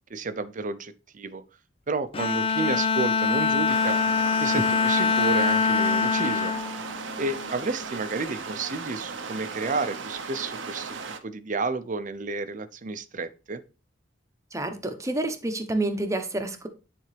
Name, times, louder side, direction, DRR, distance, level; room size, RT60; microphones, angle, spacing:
voice 1, 0.1-1.4 1.9-4.0 4.4-6.5 7.2-10.9 11.2-13.6, right 3 dB, 45° right, 0.6 m, -31 dB
Bowed string instrument, 2.1-7.7, left 5 dB, 30° left, 0.4 m, -24 dB
sound 1, 3.7-11.2, right 4 dB, 85° right, 0.8 m, -36 dB
voice 2, 14.5-16.7, right 2 dB, 15° right, 0.9 m, -28 dB
10.5 x 3.5 x 3.3 m
head